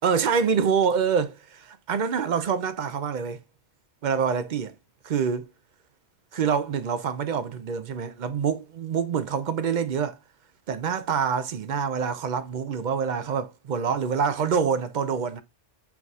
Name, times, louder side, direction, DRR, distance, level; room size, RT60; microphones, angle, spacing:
voice 1, 0.0-3.4 4.0-4.7 5.0-5.5 6.3-10.2 10.7-15.4, right 6 dB, 50° right, 0.6 m, -26 dB
4.6 x 4.0 x 2.3 m
omnidirectional pair, 1.2 m